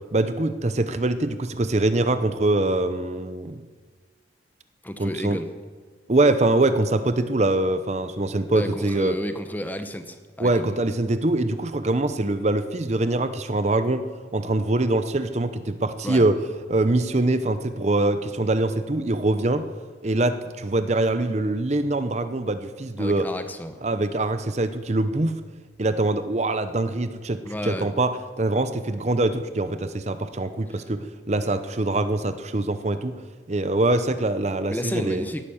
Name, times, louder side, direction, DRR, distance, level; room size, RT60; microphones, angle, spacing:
voice 1, 0.1-3.6 5.0-5.4 6.1-9.2 10.4-14.0 14.3-16.4 16.7-19.7 20.0-23.3 23.8-25.4 25.8-28.1 28.4-33.2 33.5-35.2, right 2 dB, 35° right, 11 dB, 0.7 m, -23 dB
voice 2, 4.8-5.5 8.5-10.7 16.0-16.3 23.0-23.8 27.4-27.9 30.7-30.8 34.7-35.4, equal, 10° left, 9 dB, 0.8 m, -31 dB
17.5 x 11.5 x 7.1 m, 1.5 s
head